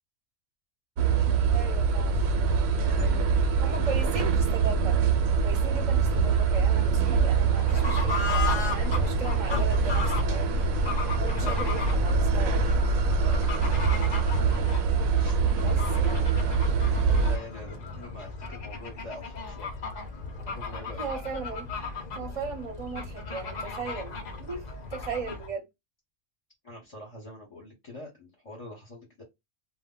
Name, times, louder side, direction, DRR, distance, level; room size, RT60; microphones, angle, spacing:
sound 1, 1.0-17.4, right 5 dB, 80° right, 1.0 m, -24 dB
voice 1, 1.5-2.2 3.6-5.0 5.4-10.7 11.2-12.6 15.6-16.3 21.0-21.7 22.1-24.6 24.9-25.7, right 4 dB, 30° right, 0.7 m, -37 dB
voice 2, 2.7-3.3 3.7-3.9 11.4-11.8 13.2-13.4 15.2-15.9 17.0-19.7 20.3-21.1 26.6-29.2, left 2 dB, 30° left, 0.8 m, -44 dB
Fowl / Bird, 7.5-25.5, left 4 dB, 55° left, 0.4 m, -36 dB
2.1 x 2.1 x 3.6 m
omnidirectional pair, 1.4 m